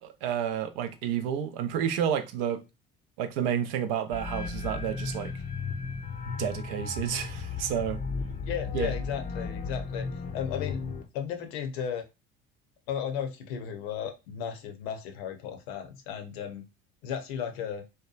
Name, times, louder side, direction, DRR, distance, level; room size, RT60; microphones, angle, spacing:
voice 1, 0.0-2.6 3.2-5.3 6.4-8.0 8.7-8.9, right 9 dB, 70° right, 0.5 m, -30 dB
sound 1, 4.1-11.0, left 4 dB, 25° left, 0.4 m, -35 dB
voice 2, 8.5-10.8 11.1-12.0 12.9-16.7 17.0-17.8, left 8 dB, 75° left, 0.6 m, -35 dB
2.8 x 2.2 x 2.3 m
hypercardioid pair, 65°, 31 cm